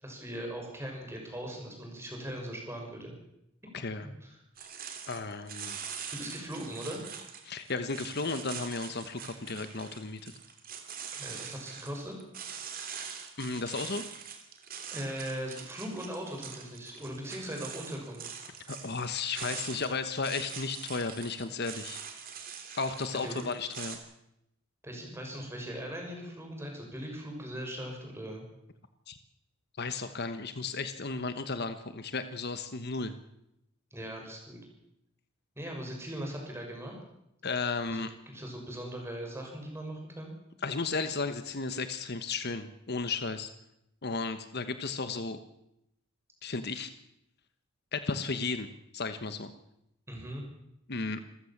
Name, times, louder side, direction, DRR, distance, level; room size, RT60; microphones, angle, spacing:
voice 1, 0.0-3.1 4.0-4.4 6.1-7.0 11.1-12.1 14.9-18.4 23.2-23.4 24.8-28.4 33.9-34.6 35.6-36.9 37.9-40.3 50.1-50.4, equal, 10° right, 1 dB, 6.2 m, -39 dB
voice 2, 3.7-4.1 5.1-5.8 7.4-10.3 13.4-14.0 18.7-22.0 22.8-24.0 29.1-29.2 29.8-33.1 37.4-38.1 40.6-43.5 44.0-45.4 46.4-46.9 47.9-48.7 48.9-49.5 50.9-51.2, left 4 dB, 50° left, 10 dB, 1.2 m, -34 dB
sound 1, 4.6-24.0, right 7 dB, 45° right, 3.1 m, -43 dB
27.0 x 15.0 x 7.4 m, 0.81 s
head